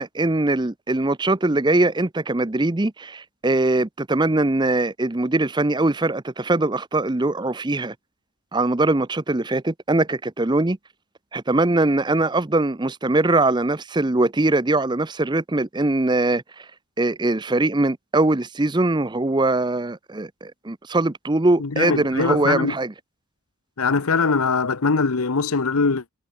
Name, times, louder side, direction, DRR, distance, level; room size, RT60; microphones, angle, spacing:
voice 1, 0.0-7.9 8.5-10.8 11.3-16.7 17.0-22.9, right 2 dB, 20° right, 0.6 m, -22 dB
voice 2, 21.6-22.7 23.8-26.1, left 4 dB, 80° left, 1.0 m, -22 dB
head